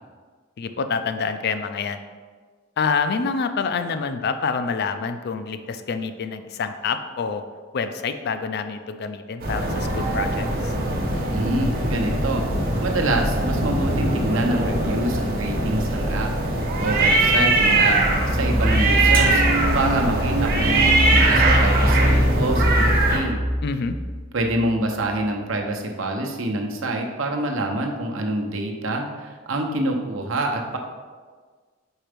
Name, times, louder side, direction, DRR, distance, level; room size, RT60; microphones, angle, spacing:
voice 1, 0.6-2.0 2.8-7.4 7.7-10.7 23.6-24.0, left 5 dB, 55° left, 9 dB, 0.4 m, -27 dB
sound 1, 9.4-23.2, right 2 dB, 50° right, 1.0 m, -21 dB
voice 2, 11.3-12.4 12.8-16.3 16.8-18.0 18.3-19.4 19.7-23.4 24.3-30.8, right 2 dB, 70° right, 3 dB, 0.8 m, -26 dB
sound 2, 18.0-24.7, equal, 20° right, 0.5 m, -23 dB
4.5 x 4.4 x 5.1 m, 1.5 s
head